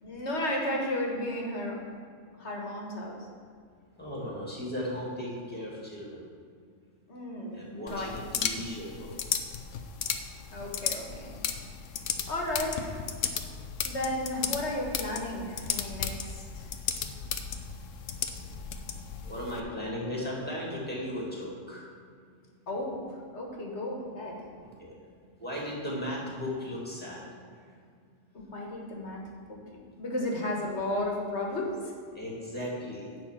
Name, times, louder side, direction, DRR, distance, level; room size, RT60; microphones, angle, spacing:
voice 1, 0.0-1.8 2.4-3.2 7.1-8.1 10.5-11.4 12.3-12.9 13.8-16.7 22.7-24.4 28.3-29.2 29.5-29.6 30.0-31.9, left 1 dB, 60° left, -1 dB, 1.9 m, -33 dB
voice 2, 4.0-6.2 7.5-9.2 19.0-21.9 24.8-25.0 25.4-27.2 32.1-33.1, left 1 dB, 5° left, -5 dB, 2.4 m, -36 dB
sound 1, 7.9-19.6, left 7 dB, 80° left, 1.0 m, -35 dB
10.5 x 4.4 x 7.4 m, 2.1 s
omnidirectional pair, 1.3 m